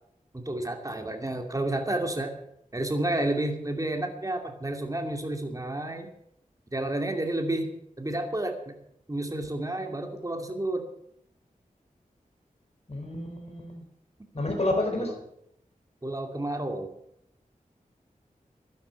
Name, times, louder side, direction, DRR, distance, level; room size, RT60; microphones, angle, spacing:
voice 1, 0.3-2.3 2.7-6.1 6.7-8.7 9.1-10.9 14.3-14.6 15.0-15.2 16.0-16.9, right 1 dB, 25° right, 4 dB, 2.5 m, -31 dB
voice 2, 12.9-13.8 14.3-15.1, left 2 dB, 45° left, 3 dB, 4.0 m, -29 dB
12.0 x 11.5 x 8.1 m, 0.74 s
wide cardioid pair, 75°, 15 cm